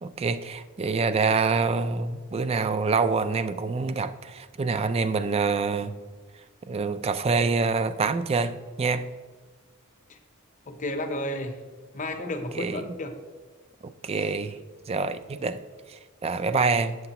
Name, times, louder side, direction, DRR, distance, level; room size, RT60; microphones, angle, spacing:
voice 1, 0.0-5.9 6.7-9.1 12.5-12.9 13.8-14.6 14.9-15.6 15.9-17.0, right 4 dB, 30° right, 13 dB, 0.3 m, -26 dB
voice 2, 10.7-11.6 11.9-13.2 14.1-14.3, left 1 dB, 35° left, 6 dB, 0.7 m, -32 dB
8.2 x 7.9 x 2.9 m, 1.5 s
head